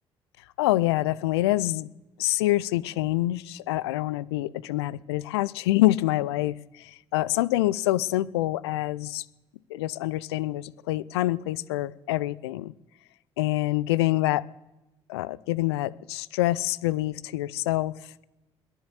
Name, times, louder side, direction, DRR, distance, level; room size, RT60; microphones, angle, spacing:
voice 1, 0.6-1.9 2.2-9.2 9.7-12.7 13.4-14.4 15.1-17.9, left 17 dB, 80° left, 20 dB, 0.5 m, -26 dB
20.5 x 7.2 x 8.3 m, 1.0 s
figure-of-eight pair, 45°, 13 cm